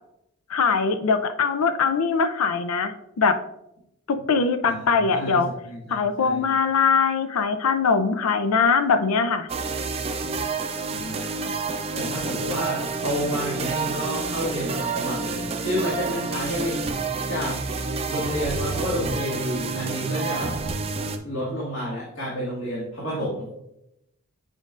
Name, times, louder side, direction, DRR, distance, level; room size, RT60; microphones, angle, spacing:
voice 1, 0.5-3.4 4.1-5.5 5.9-9.5, left 5 dB, 85° left, 9 dB, 0.5 m, -22 dB
voice 2, 4.7-5.4 5.6-6.5 10.9-11.5 11.9-16.8 17.3-17.6 18.1-20.6 21.2-23.5, equal, 60° left, -7 dB, 1.8 m, -30 dB
sound 1, 9.5-21.2, right 4 dB, 25° right, 0.4 m, -29 dB
7.4 x 5.2 x 2.4 m, 0.83 s
head